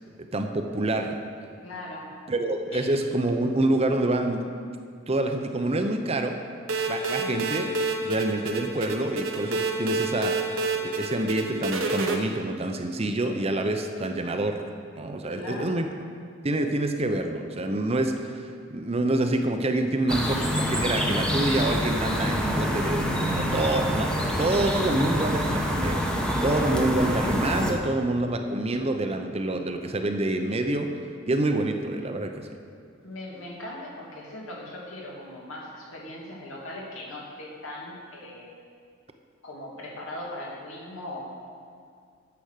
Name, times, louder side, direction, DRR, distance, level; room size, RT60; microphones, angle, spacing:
voice 1, 0.3-1.2 2.3-4.5 5.1-6.4 6.9-7.7 8.0-10.5 10.8-14.6 15.0-15.9 16.4-30.9 31.3-32.5, right 2 dB, 30° right, 5 dB, 0.6 m, -27 dB
voice 2, 1.6-2.1 2.7-2.9 7.2-7.4 15.3-15.8 33.0-38.5 39.4-41.2, left 1 dB, 80° left, -4 dB, 2.5 m, -39 dB
sound 1, 6.7-12.2, right 3 dB, 80° right, 1.0 m, -28 dB
sound 2, 20.1-27.7, equal, 5° left, 0.9 m, -26 dB
10.0 x 7.0 x 6.5 m, 2.2 s
head